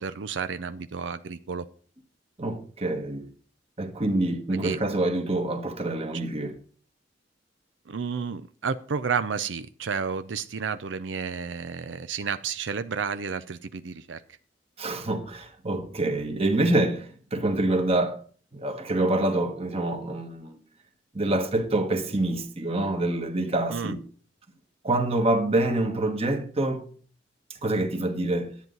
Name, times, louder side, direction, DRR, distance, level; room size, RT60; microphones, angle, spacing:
voice 1, 0.0-1.7 4.5-4.8 7.9-14.2 23.7-24.0, right 6 dB, 85° right, 0.5 m, -31 dB
voice 2, 2.4-3.2 3.8-6.5 14.8-18.2 18.5-20.6 21.1-24.0 24.8-26.9 27.6-28.5, right 2 dB, 35° right, 1.5 m, -26 dB
10.5 x 9.2 x 3.9 m
head